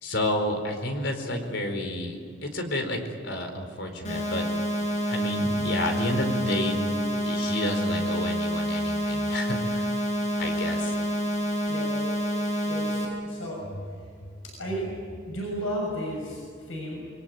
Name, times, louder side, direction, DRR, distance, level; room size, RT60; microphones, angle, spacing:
voice 1, 0.0-4.4 5.1-6.8 7.0-9.9 10.4-10.9, left 1 dB, 65° left, 5 dB, 4.5 m, -30 dB
sound 1, 4.0-13.0, equal, 40° left, 6.5 m, -28 dB
voice 2, 11.7-12.4 12.7-14.0 14.4-17.1, equal, 85° left, -1 dB, 6.7 m, -34 dB
28.0 x 22.0 x 9.5 m, 2.3 s
head